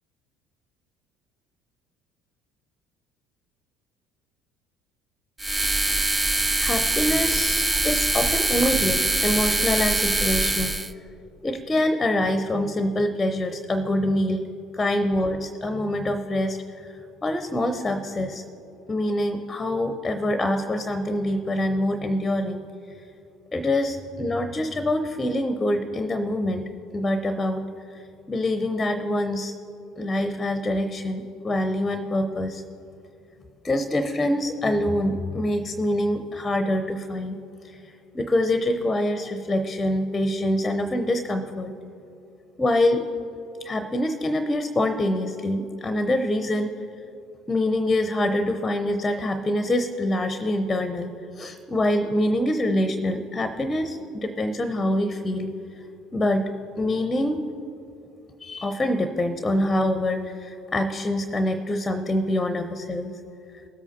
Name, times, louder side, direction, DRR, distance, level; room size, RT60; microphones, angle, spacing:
sound 1, 5.4-10.9, right 2 dB, 15° right, 0.5 m, -23 dB
voice 1, 6.6-10.7 11.4-14.5 14.7-16.9 17.2-18.4 18.9-22.6 23.5-26.7 26.9-27.6 28.3-29.5 30.0-32.6 33.6-37.4 37.6-37.8 38.1-41.7 42.6-43.0 43.6-46.7 47.5-55.5 56.1-56.5 56.8-57.4 58.4-63.1, left 1 dB, 20° left, 8 dB, 0.7 m, -25 dB
18.5 x 8.3 x 2.7 m, 2.7 s
figure-of-eight pair, 60°, 0 cm